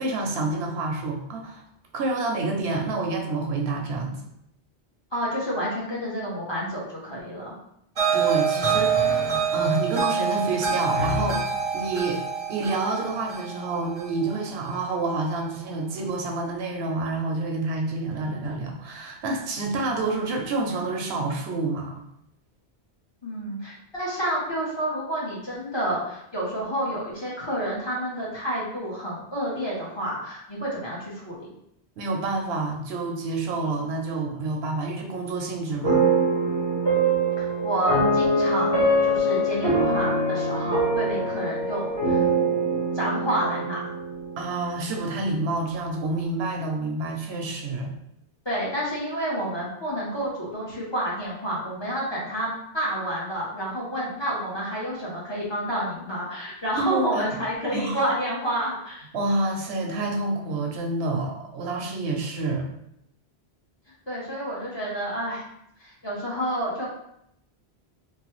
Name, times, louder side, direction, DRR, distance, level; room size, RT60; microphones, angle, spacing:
voice 1, 0.0-1.6 1.9-4.2 8.1-12.2 12.5-22.0 32.0-36.0 44.4-47.9 56.8-57.2 57.7-58.0 59.1-62.7, right 3 dB, 80° right, 1 dB, 0.8 m, -28 dB
voice 2, 5.1-7.5 23.2-31.5 37.4-42.2 42.9-43.9 48.4-59.1 64.1-65.4 65.8-66.9, right 1 dB, 30° left, -6 dB, 0.8 m, -29 dB
sound 1, 8.0-15.1, right 6 dB, 40° right, 0.6 m, -26 dB
sound 2, 35.8-45.0, right 2 dB, 70° left, 1.6 m, -24 dB
3.1 x 2.2 x 3.0 m, 0.76 s
omnidirectional pair, 1.1 m